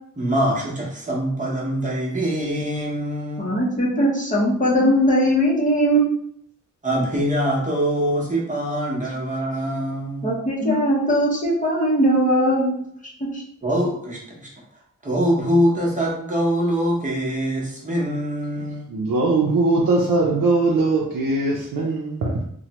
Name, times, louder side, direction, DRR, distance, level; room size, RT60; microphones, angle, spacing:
voice 1, 0.2-3.5 3.8-4.1 4.8-4.9 6.8-10.8 13.6-14.5 15.0-18.8, equal, 25° right, -3 dB, 0.8 m, -24 dB
voice 2, 3.4-6.1 10.2-12.8 13.0-13.4, equal, 25° left, -6 dB, 0.6 m, -20 dB
voice 3, 18.9-22.4, right 3 dB, 75° right, -2 dB, 0.5 m, -20 dB
3.1 x 2.1 x 2.9 m, 0.67 s
wide cardioid pair, 155°, 33 cm